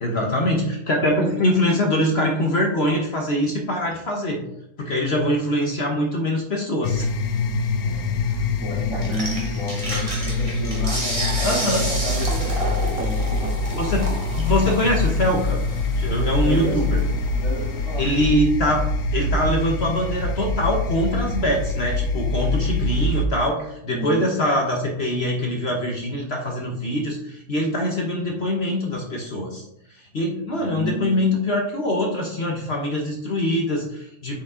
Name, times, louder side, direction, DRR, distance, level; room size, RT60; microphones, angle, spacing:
voice 1, 0.0-4.4 4.8-7.1 11.4-11.8 13.7-15.6 16.0-17.0 18.0-18.8 19.1-29.6 30.1-34.4, left 1 dB, 45° left, 1 dB, 1.2 m, -23 dB
sound 1, 6.8-23.3, left 2 dB, 80° left, 1.2 m, -25 dB
voice 2, 7.8-13.6 16.4-16.9 17.4-18.2 23.9-24.3 30.5-31.2, right 1 dB, 50° right, -5 dB, 2.8 m, -32 dB
sound 2, 9.0-18.3, right 1 dB, 20° right, 1.7 m, -32 dB
7.3 x 5.2 x 3.7 m, 0.78 s
omnidirectional pair, 1.6 m